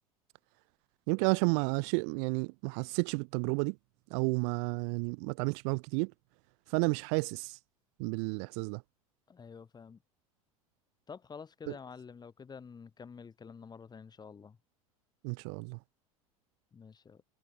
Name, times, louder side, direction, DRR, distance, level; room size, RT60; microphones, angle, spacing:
voice 1, 1.1-3.8 4.1-6.1 6.7-7.6 8.0-8.8 11.7-11.8 15.2-15.8, right 40 dB or more, 55° right, 2.1 m, -31 dB
voice 2, 9.3-10.0 11.1-14.6 16.7-17.2, left 6 dB, 20° left, 7.4 m, -49 dB
figure-of-eight pair, 80°, 18 cm